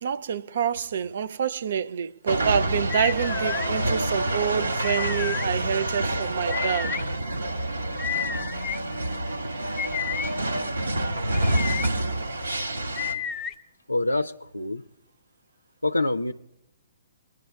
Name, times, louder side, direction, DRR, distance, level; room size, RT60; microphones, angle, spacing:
voice 1, 0.0-6.9, right 7 dB, 55° right, 0.4 m, -27 dB
sound 1, 2.3-13.1, right 1 dB, 80° right, 2.2 m, -28 dB
sound 2, 2.9-3.7 4.8-5.5 6.5-7.0 8.0-8.8 9.8-10.3 11.3-11.9 13.0-13.5, left 10 dB, 20° left, 0.7 m, -31 dB
voice 2, 13.9-14.8 15.8-16.3, left 2 dB, 90° left, 0.4 m, -26 dB
23.5 x 10.5 x 2.2 m
figure-of-eight pair, 125°, 0 cm